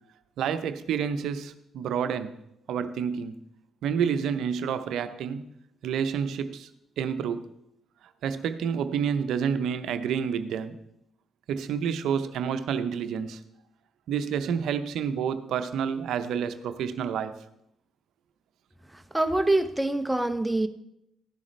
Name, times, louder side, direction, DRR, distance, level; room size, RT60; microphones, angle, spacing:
voice 1, 0.4-2.3 2.7-3.4 3.8-5.5 5.8-6.7 7.0-7.5 8.2-10.8 11.5-13.4 14.1-17.3, right 7 dB, 70° right, 0.7 m, -29 dB
voice 2, 18.9-20.7, right 2 dB, 10° right, 0.9 m, -25 dB
14.5 x 11.0 x 3.3 m
hypercardioid pair, 45°, 0 cm